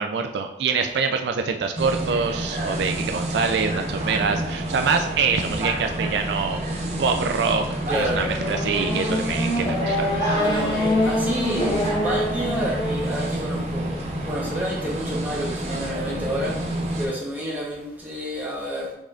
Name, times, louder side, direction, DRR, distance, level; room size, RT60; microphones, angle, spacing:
voice 1, 0.0-6.6 7.0-10.4, right 5 dB, 75° right, 5 dB, 0.3 m, -25 dB
sound 1, 1.8-17.1, right 1 dB, 40° right, 0.6 m, -29 dB
voice 2, 7.9-8.2 10.3-16.6 17.0-18.9, equal, 10° right, -5 dB, 0.9 m, -29 dB
Race car auto racing / Accelerating revving vroom, 8.1-13.3, left 1 dB, 25° left, 0.6 m, -25 dB
5.3 x 3.7 x 2.4 m, 0.87 s
head